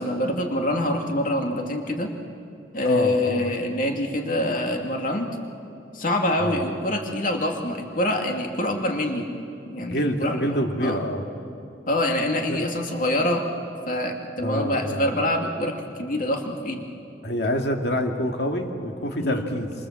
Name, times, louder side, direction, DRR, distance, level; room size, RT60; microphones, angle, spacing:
voice 1, 0.0-2.1 2.7-5.3 5.9-9.2 9.7-11.0 11.9-13.4 13.9-15.7 16.0-16.9 19.2-19.4, left 1 dB, 50° left, 2 dB, 2.5 m, -25 dB
voice 2, 2.8-3.5 6.4-6.7 9.9-11.2 12.5-12.6 14.4-15.1 17.2-19.7, left 1 dB, 65° left, 3 dB, 2.4 m, -26 dB
28.0 x 27.0 x 7.6 m, 2.6 s
head